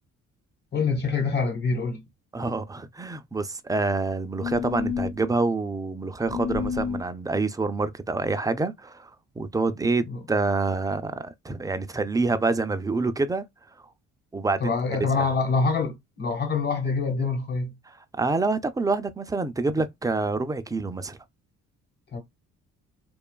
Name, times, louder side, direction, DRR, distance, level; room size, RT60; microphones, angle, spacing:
voice 1, 0.7-2.0 10.1-10.2 14.6-17.8 22.1-22.2, left 4 dB, 35° left, 1.2 m, -25 dB
voice 2, 2.3-9.1 9.4-13.4 14.3-14.7 15.2-15.3 17.9-21.2, right 3 dB, 10° right, 0.3 m, -27 dB
sound 1, 4.4-5.2 6.3-7.0, left 7 dB, 75° left, 0.5 m, -29 dB
2.9 x 2.3 x 2.2 m
cardioid pair, 90°, 30 cm